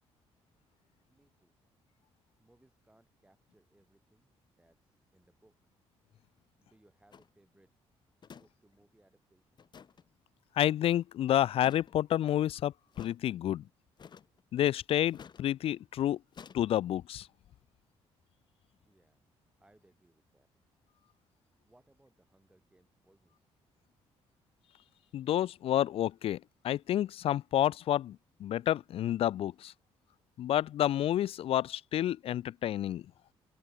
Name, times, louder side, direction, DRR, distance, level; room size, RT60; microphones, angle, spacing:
voice 1, 1.1-1.6 2.4-5.6 6.6-7.7 8.3-9.6 18.8-19.2 19.6-20.5 21.6-23.5, right 1 dB, 10° right, 5.4 m, -67 dB
sound 1, 7.1-7.3 8.2-8.5 8.7-8.8 9.6-10.0 11.6-12.0 12.9-13.2 14.0-14.4 15.1-15.4 16.3-16.6, left 7 dB, 40° left, 1.2 m, -51 dB
voice 2, 10.6-13.6 14.5-16.2 16.5-17.3 25.1-26.4 26.6-29.7 30.4-33.0, left 12 dB, 60° left, 0.4 m, -29 dB
cardioid pair, 100°, 11 cm